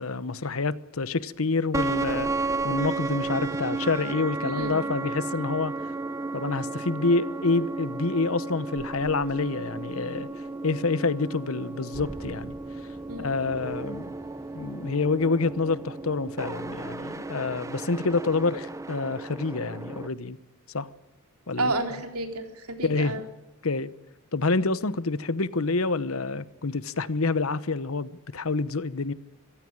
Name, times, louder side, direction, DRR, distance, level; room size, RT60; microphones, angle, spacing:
voice 1, 0.0-2.3 2.6-5.7 6.3-10.3 10.6-12.6 13.2-14.1 14.5-20.4 20.7-20.9 21.5-21.7 22.8-23.2 23.6-23.9 24.3-29.1, left 3 dB, 70° left, 1.0 m, -27 dB
sound 1, 1.7-20.1, right 3 dB, 15° right, 0.8 m, -33 dB
voice 2, 4.4-4.8 13.1-13.3 21.6-23.2, right 2 dB, 90° right, 3.4 m, -31 dB
23.5 x 16.0 x 8.8 m
head